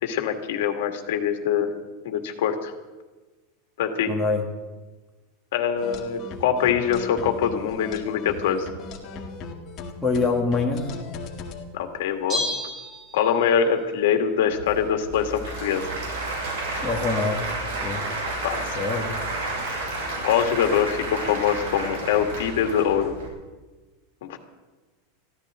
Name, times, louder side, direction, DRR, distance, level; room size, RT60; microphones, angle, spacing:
voice 1, 0.0-1.7 2.0-2.7 3.8-4.1 5.5-8.7 11.7-12.4 13.1-15.9 18.4-18.8 20.2-23.1 24.3-24.4, left 8 dB, 65° left, 5 dB, 2.1 m, -24 dB
voice 2, 4.1-4.4 10.0-10.9 16.8-17.5 17.8-18.0 18.7-19.1, left 4 dB, 5° left, -4 dB, 2.2 m, -24 dB
sound 1, 5.8-11.6, left 4 dB, 30° left, 1.9 m, -37 dB
Bell, 12.3-13.7 14.0-14.1, left 1 dB, 15° right, 3.2 m, -31 dB
Applause / Crowd, 14.5-23.3, right 2 dB, 70° right, 6.6 m, -31 dB
23.0 x 15.0 x 3.8 m, 1.2 s
supercardioid pair, 170°, 0 cm